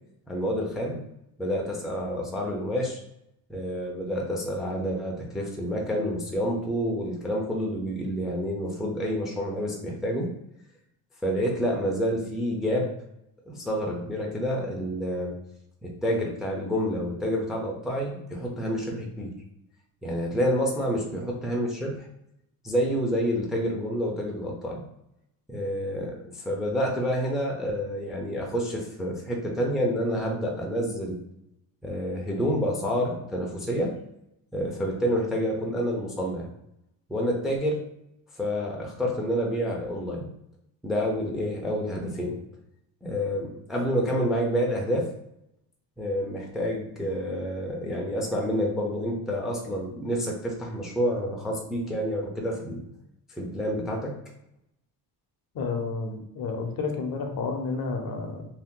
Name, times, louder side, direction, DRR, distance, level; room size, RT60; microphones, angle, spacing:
voice 1, 0.3-1.0 1.4-3.0 3.5-10.3 11.2-12.9 13.5-15.4 15.8-19.3 20.0-22.1 22.6-24.8 25.5-31.2 31.8-33.9 34.5-36.5 37.1-37.8 38.4-40.3 40.8-42.4 43.0-45.1 46.0-52.8 53.3-54.1, equal, ahead, -1 dB, 0.5 m, -28 dB
voice 2, 55.5-58.5, left 4 dB, 50° left, 4 dB, 0.7 m, -30 dB
2.8 x 2.1 x 3.6 m, 0.81 s
cardioid pair, 115°, 44 cm